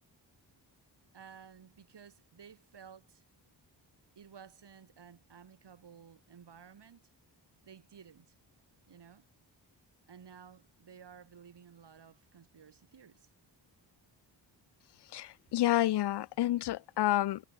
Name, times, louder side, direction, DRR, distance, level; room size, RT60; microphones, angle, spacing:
voice 1, 1.1-3.2 4.1-7.1 7.6-8.3 8.9-9.3 10.1-13.3, right 7 dB, 65° right, 5.1 m, -54 dB
voice 2, 15.1-17.4, left 14 dB, 65° left, 0.5 m, -29 dB
wide cardioid pair, 110°, 44 cm